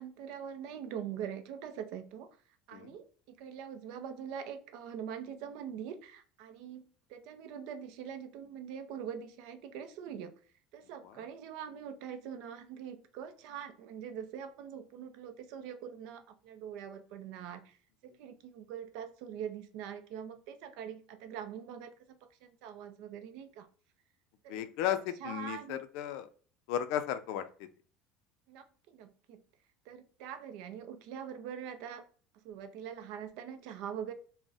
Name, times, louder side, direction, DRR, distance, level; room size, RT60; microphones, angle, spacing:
voice 1, 0.0-2.4 2.7-10.3 10.7-17.8 18.0-21.9 22.2-23.7 24.4-25.8 28.5-29.4 29.9-32.0 32.3-34.1, right 8 dB, 65° right, 9 dB, 0.4 m, -43 dB
voice 2, 24.5-26.3 26.7-27.7, left 10 dB, 70° left, 10 dB, 0.4 m, -35 dB
3.9 x 2.1 x 2.4 m, 0.43 s
cardioid pair, 150°, 0 cm